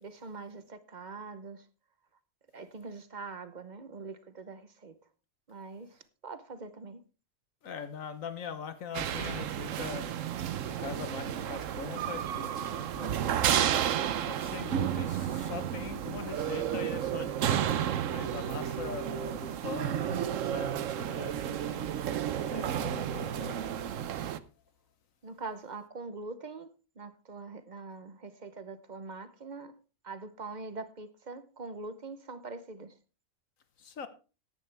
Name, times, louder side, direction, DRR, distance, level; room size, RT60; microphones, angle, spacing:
voice 1, 0.0-1.6 2.5-4.9 5.5-7.0 25.2-26.7 27.0-29.7 30.0-32.9, right 3 dB, 40° right, 0.9 m, -43 dB
voice 2, 7.6-10.2 10.6-13.9 14.2-17.6 18.1-21.9 22.4-23.6 33.8-34.1, left 6 dB, 75° left, 1.4 m, -42 dB
sound 1, 8.9-24.4, right 10 dB, 75° right, 1.1 m, -32 dB
15.0 x 10.5 x 3.4 m
omnidirectional pair, 1.4 m